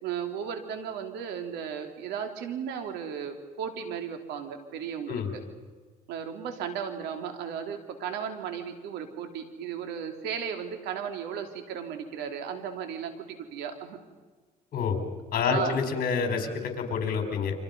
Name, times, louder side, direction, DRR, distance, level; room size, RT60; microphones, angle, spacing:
voice 1, 0.0-5.4 6.1-14.0 15.4-15.8, right 7 dB, 85° right, 6 dB, 3.2 m, -35 dB
voice 2, 14.7-15.1 15.3-17.5, left 5 dB, 60° left, 5 dB, 4.7 m, -28 dB
30.0 x 25.5 x 5.5 m, 1.4 s
cardioid pair, 110°, 17 cm